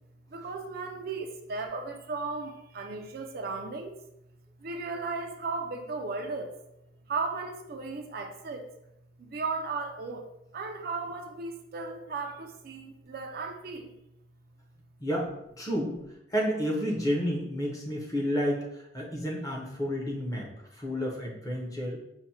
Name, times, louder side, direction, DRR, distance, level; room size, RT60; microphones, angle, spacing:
voice 1, 0.3-4.0 4.6-6.5 7.1-8.7 9.2-10.3 10.5-13.9, right 4 dB, 50° right, 4 dB, 0.4 m, -35 dB
voice 2, 15.0-15.3 15.6-16.0 16.3-22.0, equal, 20° left, -2 dB, 0.7 m, -30 dB
5.8 x 2.1 x 2.8 m, 0.82 s
head